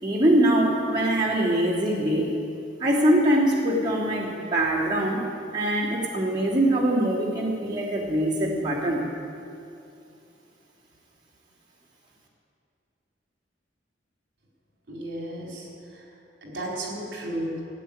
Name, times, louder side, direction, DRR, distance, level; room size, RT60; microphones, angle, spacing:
voice 1, 0.0-2.3 2.8-5.3 5.5-9.0, right 1 dB, 25° right, -6 dB, 2.9 m, -23 dB
voice 2, 14.9-15.7 15.9-16.1 16.4-17.6, right 1 dB, 60° right, -3 dB, 4.4 m, -33 dB
15.0 x 9.3 x 8.7 m, 2.6 s
head